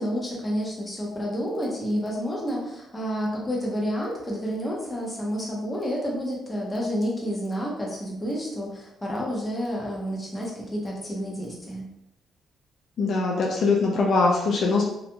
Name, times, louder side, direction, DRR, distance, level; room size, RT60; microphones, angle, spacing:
voice 1, 0.0-11.9, equal, 20° left, -3 dB, 0.8 m, -29 dB
voice 2, 13.0-14.9, left 3 dB, 60° left, -1 dB, 0.4 m, -22 dB
2.9 x 2.4 x 2.2 m, 0.84 s
cardioid pair, 90°, 0 cm